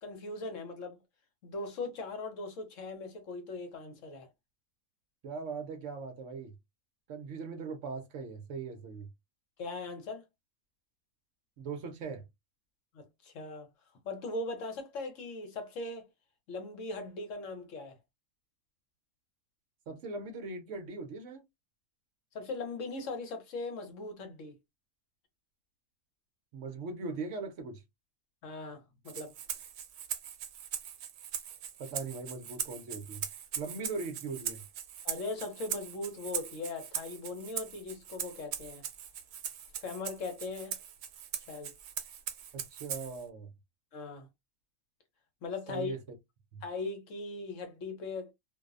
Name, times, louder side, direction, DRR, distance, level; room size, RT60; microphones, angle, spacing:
voice 1, 0.0-1.0 1.4-4.3 9.6-10.2 12.9-13.7 14.0-16.1 16.5-18.0 22.3-24.6 28.4-29.3 35.0-38.8 39.8-40.8 41.5-41.7 43.9-44.3 45.4-45.9 46.6-48.3, left 3 dB, 65° left, 1.0 m, -39 dB
voice 2, 5.2-6.5 7.1-9.1 11.6-12.2 19.9-21.4 26.5-27.8 31.8-33.3 33.6-34.6 42.5-43.5 45.7-46.0 46.5-46.6, right 4 dB, 65° right, 0.9 m, -40 dB
Rattle (instrument), 29.1-43.2, right 9 dB, 90° right, 1.0 m, -40 dB
2.6 x 2.0 x 2.3 m
omnidirectional pair, 1.5 m